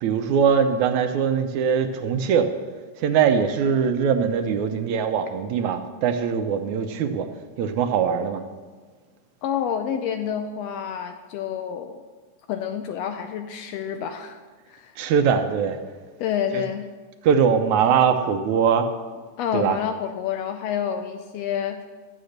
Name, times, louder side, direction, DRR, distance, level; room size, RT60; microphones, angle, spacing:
voice 1, 0.0-2.5 3.0-7.3 7.6-8.4 15.0-15.8 16.5-16.6 17.2-18.9 19.5-19.8, right 7 dB, 75° right, 7 dB, 2.0 m, -21 dB
voice 2, 9.4-12.0 12.5-14.4 14.7-14.9 16.2-16.8 19.4-21.8, left 8 dB, 85° left, 7 dB, 1.5 m, -28 dB
13.0 x 7.7 x 6.5 m, 1.4 s
omnidirectional pair, 3.6 m